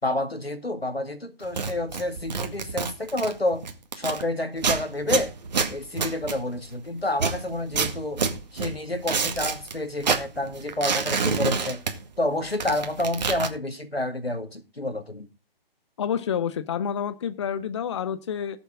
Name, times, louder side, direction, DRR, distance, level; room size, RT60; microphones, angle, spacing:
voice 1, 0.0-3.7 4.0-5.3 5.7-8.2 8.5-11.8 12.2-15.3, left 1 dB, 85° left, 2.4 m, -29 dB
sound 1, 1.4-4.2 4.6-6.8 7.1-9.7 10.0-12.3 12.5-13.5, right 5 dB, 45° right, 2.0 m, -28 dB
voice 2, 16.0-18.6, left 8 dB, 30° left, 0.8 m, -28 dB
19.0 x 7.0 x 3.7 m
figure-of-eight pair, 140°, 30 cm